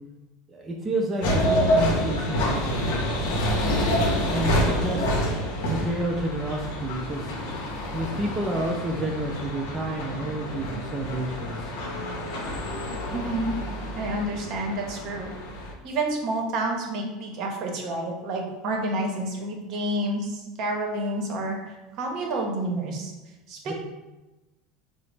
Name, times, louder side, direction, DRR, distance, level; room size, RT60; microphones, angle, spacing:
voice 1, 0.5-2.8 4.3-5.1 5.8-7.2 7.9-11.7 23.7-23.8, right 1 dB, 25° right, -1 dB, 0.5 m, -29 dB
sound 1, 1.2-15.7, equal, 65° left, 0.7 m, -27 dB
voice 2, 13.1-13.5 13.9-15.3 15.8-23.1 23.5-23.7, right 1 dB, 55° right, 0 dB, 0.8 m, -29 dB
3.8 x 2.0 x 3.2 m, 1.1 s
hypercardioid pair, 80°, 0 cm